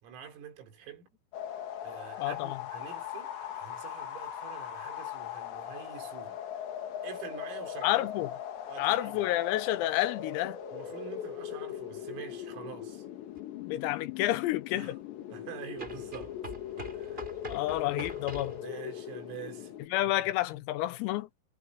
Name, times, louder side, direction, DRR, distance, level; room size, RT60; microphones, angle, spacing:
voice 1, 0.0-1.1 1.8-6.4 7.0-8.1 8.7-9.1 10.7-13.0 14.7-14.9 15.3-16.4 16.9-17.2 18.6-19.7 20.0-20.2, right 9 dB, 85° right, 6.6 m, -46 dB
sound 1, 1.3-19.9, left 10 dB, 60° left, 4.1 m, -40 dB
voice 2, 2.2-2.6 7.8-8.3 8.8-10.6 13.6-15.0 17.5-18.6 19.9-21.3, left 16 dB, 90° left, 3.9 m, -30 dB
sound 2, 13.3-13.4 15.8-18.6, right 2 dB, 10° right, 3.5 m, -44 dB
omnidirectional pair, 6.0 m